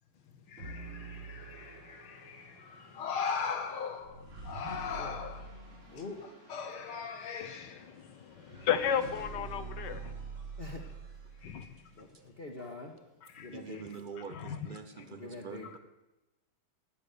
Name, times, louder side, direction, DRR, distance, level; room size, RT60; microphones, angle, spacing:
voice 1, 0.5-5.5 6.5-7.9 11.4-11.7 12.6-12.7 13.3-13.6, left 6 dB, 85° left, 2.4 m, -39 dB
sound 1, 0.6-11.9, right 3 dB, 80° right, 6.7 m, -47 dB
voice 2, 5.9-6.2 10.6-10.8 12.0-12.9 13.4-13.9 15.1-15.7, left 3 dB, 30° left, 1.5 m, -44 dB
voice 3, 7.4-10.2 11.4-11.7 14.3-14.6, left 8 dB, 60° left, 1.4 m, -34 dB
voice 4, 13.5-15.8, right 6 dB, 65° right, 0.5 m, -45 dB
16.0 x 11.0 x 6.7 m
omnidirectional pair, 2.3 m